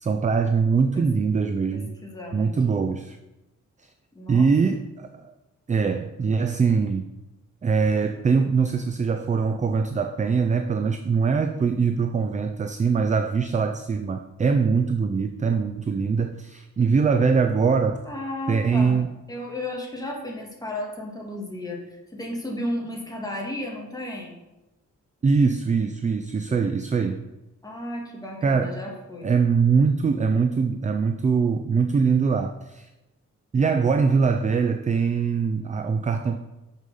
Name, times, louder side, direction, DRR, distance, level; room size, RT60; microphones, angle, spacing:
voice 1, 0.0-1.9 2.3-3.2 4.3-5.3 5.7-7.1 7.6-18.0 18.5-19.1 25.2-27.2 28.4-28.8 29.2-32.9 33.5-36.4, right 5 dB, 25° right, 7 dB, 0.4 m, -22 dB
voice 2, 1.7-2.5 4.2-4.5 18.1-19.0 19.3-24.4 27.6-29.3, left 1 dB, 10° left, -1 dB, 1.8 m, -34 dB
6.5 x 6.4 x 5.5 m, 1.0 s
wide cardioid pair, 155°, 30 cm